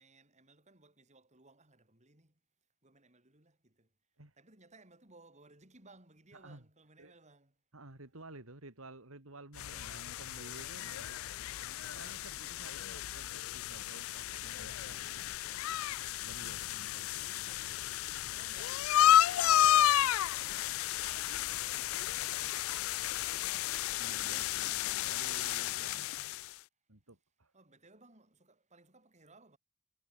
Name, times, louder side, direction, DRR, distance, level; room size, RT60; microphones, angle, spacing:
voice 1, 0.0-2.3 2.8-3.9 4.4-7.5 9.5-10.1 16.0-23.8 27.5-29.6, right 3 dB, 35° right, 7.7 m, -61 dB
voice 2, 6.3-6.6 7.0-7.1 7.7-11.2 11.8-15.4 15.8-17.1 24.0-26.1 26.9-27.5, right 2 dB, 80° right, 3.4 m, -53 dB
sound 1, 9.6-26.5, left 12 dB, 75° left, 0.4 m, -32 dB
head